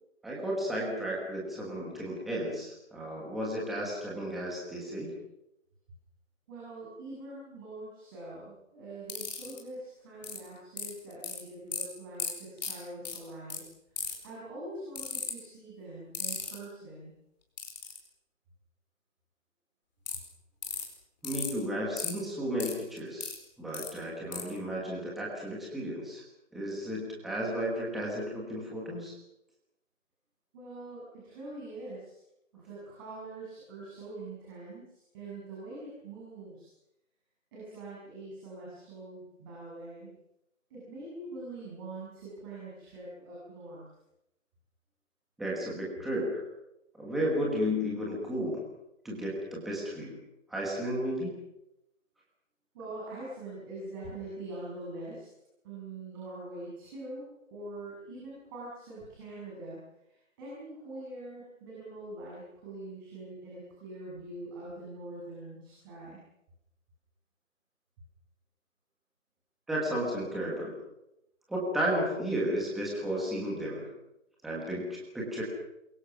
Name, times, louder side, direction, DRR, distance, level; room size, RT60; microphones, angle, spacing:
voice 1, 0.2-5.1 21.2-23.3 23.6-26.2 26.5-29.1 45.4-46.4 46.9-48.6 49.0-50.2 50.5-51.3 69.7-70.7 71.5-73.9 74.4-75.4, equal, ahead, -4 dB, 1.3 m, -33 dB
voice 2, 6.5-13.6 14.2-17.1 30.5-32.2 32.5-36.7 37.5-40.2 40.7-43.9 52.7-55.3 55.6-57.2 57.5-59.8 60.1-66.2, right 2 dB, 15° right, -7 dB, 7.0 m, -44 dB
sound 1, 9.1-9.6 10.2-10.4 10.8-11.4 11.7-11.8 12.2-12.3 12.6-12.7 13.0-13.2 13.5-13.6 14.0-14.3 15.0-15.3 16.1-16.5 17.6-18.0 20.1-20.2 20.6-20.8 21.2-21.5 22.0-22.1 22.6-23.4 23.7-23.9 24.3-24.4, left 6 dB, 35° left, 4.6 m, -35 dB
27.5 x 22.5 x 6.1 m, 0.85 s
hypercardioid pair, 170°, 40 cm